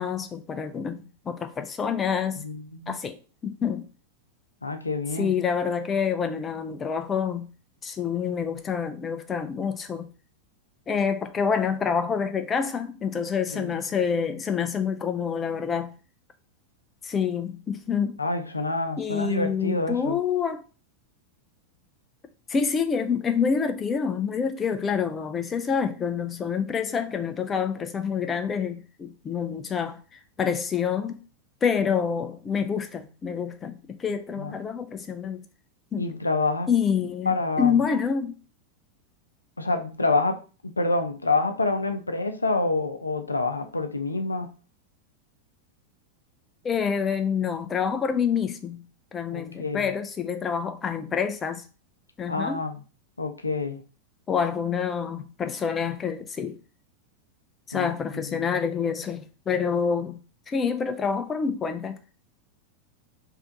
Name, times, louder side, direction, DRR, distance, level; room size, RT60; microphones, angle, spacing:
voice 1, 0.0-2.4 2.9-3.8 5.1-7.5 7.8-10.1 10.9-15.9 17.0-18.2 19.0-20.6 22.5-30.0 30.4-31.2 31.6-35.4 35.9-36.1 36.7-38.4 46.6-48.8 49.1-51.6 52.2-52.6 54.3-56.6 57.7-60.2 60.5-62.0, left 6 dB, 20° left, 0.5 m, -27 dB
voice 2, 2.4-3.0 4.6-5.3 13.5-13.8 18.2-20.2 34.4-34.5 36.0-36.7 37.3-37.8 39.6-40.4 40.8-44.5 49.3-49.9 52.3-52.8 53.2-53.8 57.7-57.9 58.3-58.5, left 3 dB, 80° left, 0.5 m, -27 dB
3.4 x 2.7 x 3.7 m
figure-of-eight pair, 90°, 0 cm